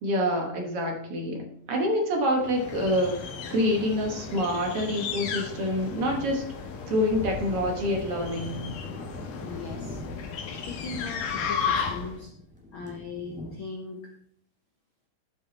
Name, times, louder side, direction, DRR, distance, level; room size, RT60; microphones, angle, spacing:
voice 1, 0.0-6.4 6.9-8.7, equal, 55° right, 2 dB, 2.0 m, -27 dB
sound 1, 2.4-12.3, left 6 dB, 85° left, 2.7 m, -34 dB
sound 2, 5.9-13.5, left 1 dB, 5° right, 1.3 m, -43 dB
voice 2, 9.4-10.0 10.5-12.3 12.7-14.0, left 4 dB, 65° left, 1 dB, 1.3 m, -39 dB
13.0 x 5.9 x 4.1 m, 0.66 s
omnidirectional pair, 3.5 m